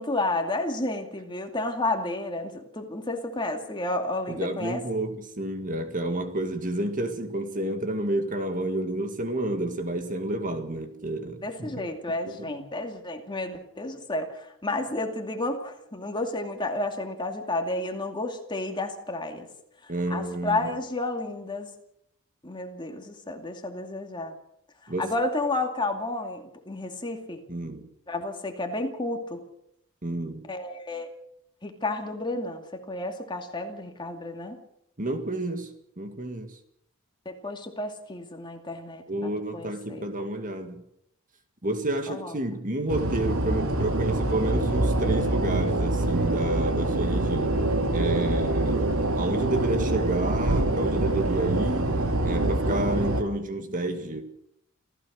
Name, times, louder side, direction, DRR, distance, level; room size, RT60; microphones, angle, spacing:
voice 1, 0.0-4.8 11.4-19.5 20.1-21.7 22.4-24.3 25.0-27.4 28.1-29.4 30.5-31.1 31.6-34.6 37.3-40.1 42.1-42.3, left 2 dB, 20° left, 2.4 m, -31 dB
voice 2, 4.3-11.7 12.3-12.5 19.9-20.7 24.9-25.1 27.5-27.9 30.0-30.5 35.0-36.6 39.1-40.8 41.6-47.6 47.9-54.2, right 1 dB, 40° right, 1.9 m, -30 dB
sound 1, 42.9-53.2, right 2 dB, 75° right, 2.5 m, -25 dB
27.5 x 15.5 x 6.4 m
head